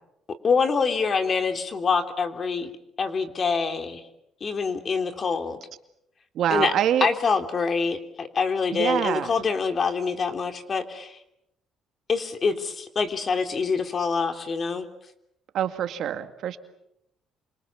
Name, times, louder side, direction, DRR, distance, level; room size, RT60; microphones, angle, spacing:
voice 1, 0.4-2.7 3.0-4.0 4.4-5.6 6.5-6.7 7.0-11.2 12.1-14.8, left 5 dB, 45° left, 7 dB, 3.2 m, -25 dB
voice 2, 6.4-7.1 8.7-9.3 15.5-16.6, right 10 dB, 70° right, 9 dB, 2.1 m, -25 dB
28.5 x 25.5 x 7.3 m, 0.81 s
cardioid pair, 80°, 0 cm